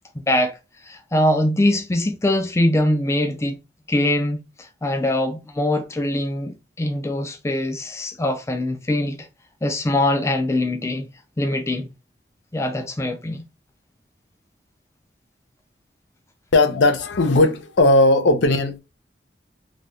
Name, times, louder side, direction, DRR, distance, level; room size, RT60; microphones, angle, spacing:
voice 1, 0.3-0.6 0.8-3.6 3.9-9.2 9.6-11.1 11.4-11.9 12.5-13.4, left 1 dB, 15° left, 0.3 m, -22 dB
voice 2, 16.5-18.8, left 2 dB, 85° left, 0.6 m, -17 dB
3.3 x 2.2 x 2.5 m
head